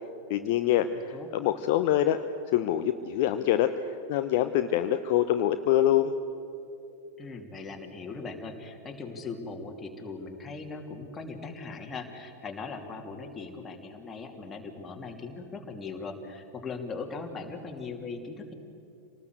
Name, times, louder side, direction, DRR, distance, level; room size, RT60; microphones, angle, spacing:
voice 1, 0.3-2.2 2.5-6.1, left 12 dB, 50° left, 8 dB, 0.8 m, -25 dB
voice 2, 0.9-1.3 7.2-18.5, left 4 dB, 20° left, 2 dB, 2.9 m, -39 dB
26.5 x 19.0 x 8.0 m, 2.8 s
figure-of-eight pair, 90°, 0 cm